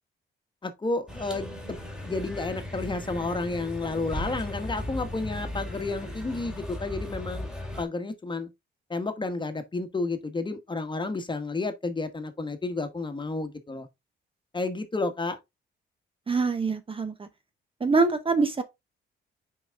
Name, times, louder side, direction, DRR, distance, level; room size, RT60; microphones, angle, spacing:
voice 1, 0.6-1.8 2.0-7.5 7.8-8.5 8.9-13.9 14.5-15.4, left 3 dB, 25° left, 1.3 m, -31 dB
sound 1, 1.1-7.9, left 1 dB, 5° right, 2.1 m, -37 dB
voice 2, 16.3-17.3 17.8-18.6, right 4 dB, 25° right, 0.8 m, -24 dB
6.0 x 4.9 x 3.5 m
cardioid pair, 90°, 20 cm